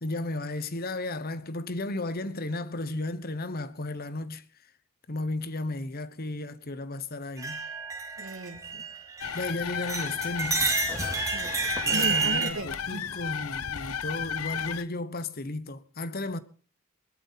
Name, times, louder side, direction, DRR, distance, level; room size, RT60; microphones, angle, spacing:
voice 1, 0.0-4.4 5.1-7.6 9.3-10.8 11.8-16.4, left 2 dB, 45° left, 1.1 m, -34 dB
sound 1, 7.4-9.5 9.8-12.5, right 4 dB, 15° right, 3.2 m, -30 dB
voice 2, 8.2-8.9 11.3-13.1, right 1 dB, 65° right, 2.3 m, -37 dB
sound 2, 9.2-14.8, left 8 dB, 90° left, 0.9 m, -34 dB
20.5 x 12.5 x 4.2 m
head